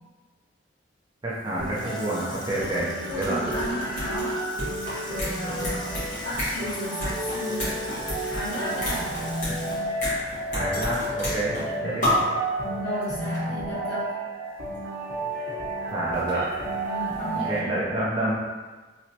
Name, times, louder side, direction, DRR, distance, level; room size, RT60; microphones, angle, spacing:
voice 1, 1.2-3.4 10.5-11.5 11.8-12.1 15.9-16.4 17.4-18.3, right 1 dB, 25° right, -7 dB, 0.5 m, -28 dB
Water tap faucet / Sink (filling or washing), 1.3-11.0 11.3-11.4, left 2 dB, 25° left, 0.4 m, -43 dB
sound 1, 1.6-17.6, right 1 dB, 65° right, 0.8 m, -32 dB
sound 2, 2.3-2.4 2.6-11.7 12.0-12.4 13.0-13.1 13.3-13.4 14.7-14.8 15.9-17.3 17.6-17.7, left 1 dB, 45° left, 1.3 m, -31 dB
voice 2, 2.6-4.4 5.0-5.9 6.2-7.8 8.2-9.1 11.6-12.0 12.8-14.2 16.8-17.6, equal, 65° left, -15 dB, 1.4 m, -34 dB
3.1 x 3.0 x 2.8 m, 1.3 s
head